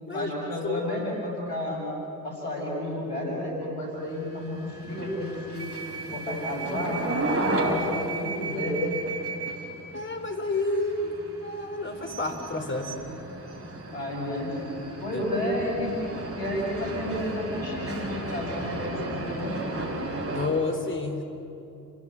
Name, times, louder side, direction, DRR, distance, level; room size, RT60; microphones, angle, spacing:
voice 1, 0.1-1.8 2.2-5.7 6.1-7.2 7.6-8.9 13.9-14.5 15.0-16.0 16.4-20.0, left 1 dB, 90° left, -1 dB, 6.6 m, -31 dB
voice 2, 0.6-0.9 9.9-13.0 15.1-15.2 20.4-21.2, left 2 dB, 25° left, 5 dB, 3.8 m, -30 dB
sound 1, 4.2-20.5, right 2 dB, 30° right, 6.5 m, -34 dB
29.5 x 18.0 x 9.8 m, 2.9 s
figure-of-eight pair, 45°, 48 cm